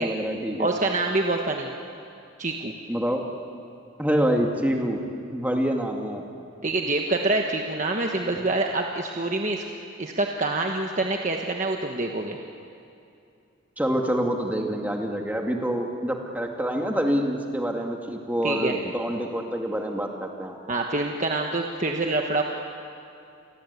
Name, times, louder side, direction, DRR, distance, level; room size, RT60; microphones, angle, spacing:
voice 1, 0.0-0.7 2.9-3.2 4.0-5.0 5.3-6.2 13.8-20.6, equal, 10° right, 1 dB, 2.2 m, -26 dB
voice 2, 0.6-1.7 2.4-2.7 6.6-9.6 10.0-12.4 18.4-18.8 20.7-22.4, right 2 dB, 35° right, 2 dB, 1.3 m, -26 dB
29.5 x 23.0 x 8.3 m, 2.5 s
head